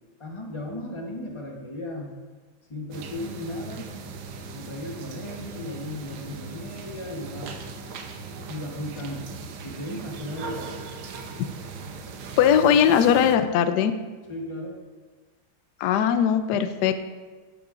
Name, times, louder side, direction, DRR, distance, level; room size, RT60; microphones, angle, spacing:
voice 1, 0.2-2.1 2.7-3.9 4.5-7.6 8.5-9.3 9.6-10.8 14.3-14.8, left 1 dB, 25° left, 0 dB, 0.6 m, -36 dB
sound 1, 2.9-13.4, right 4 dB, 85° right, 1.6 m, -39 dB
voice 2, 12.4-13.9 15.8-17.0, left 8 dB, 75° left, 10 dB, 1.0 m, -20 dB
11.0 x 8.8 x 2.5 m, 1.3 s
omnidirectional pair, 2.2 m